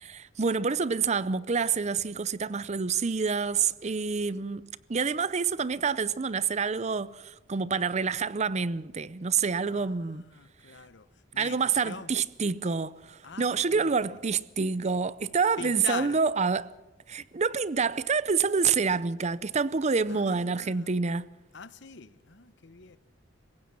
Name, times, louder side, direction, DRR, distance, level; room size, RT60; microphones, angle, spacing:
voice 1, 0.0-10.2 11.4-16.7 17.1-21.3, right 5 dB, 35° right, 0.6 m, -27 dB
voice 2, 9.6-11.1 11.3-12.1 13.2-14.2 15.6-16.2 20.1-21.0 21.5-23.0, left 5 dB, 65° left, 1.0 m, -43 dB
26.5 x 16.0 x 6.1 m
head